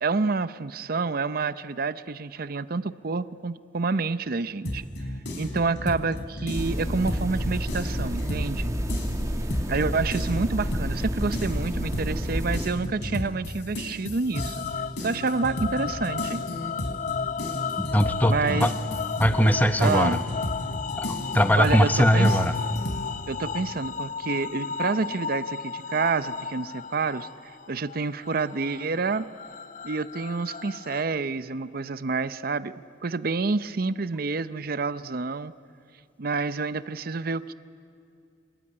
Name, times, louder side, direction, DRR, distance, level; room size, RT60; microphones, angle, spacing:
voice 1, 0.0-4.9 5.4-8.7 9.7-14.6 15.0-16.4 18.3-18.7 19.8-20.2 21.6-22.4 23.3-27.3 27.7-29.2 29.8-32.7 33.0-35.5 36.2-37.5, right 4 dB, 55° right, 14 dB, 0.6 m, -28 dB
sound 1, 4.6-8.6 8.9-23.1, left 1 dB, 70° left, 3.8 m, -34 dB
sound 2, 6.5-12.7, equal, 20° right, 1.6 m, -29 dB
sound 3, 14.3-31.0, left 6 dB, 45° left, 0.6 m, -34 dB
voice 2, 17.8-18.7 19.2-20.2 21.0-22.5, equal, 10° left, 9 dB, 0.9 m, -21 dB
26.5 x 22.0 x 9.8 m, 2.4 s
head